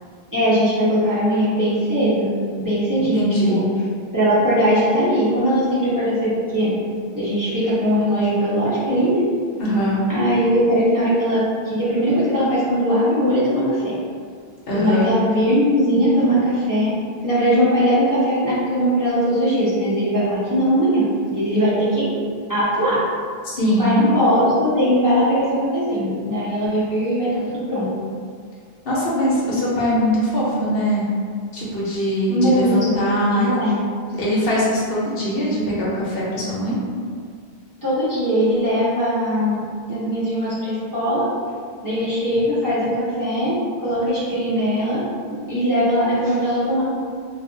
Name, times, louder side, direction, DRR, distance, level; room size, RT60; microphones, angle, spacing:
voice 1, 0.3-3.6 4.1-6.7 7.1-9.3 10.1-13.8 14.7-16.9 17.2-21.0 21.3-22.1 22.5-23.0 23.8-25.5 25.7-27.9 32.3-33.0 33.3-33.8 37.8-39.6 39.9-41.2 41.8-43.5 43.8-45.0 45.3-46.8, equal, 20° right, -12 dB, 0.6 m, -20 dB
voice 2, 3.1-3.6 9.6-10.0 14.7-15.1 23.4-24.1 28.9-31.1 31.5-33.6 34.2-36.8, equal, 70° left, -7 dB, 0.9 m, -21 dB
2.4 x 2.0 x 3.7 m, 2.1 s
omnidirectional pair, 1.1 m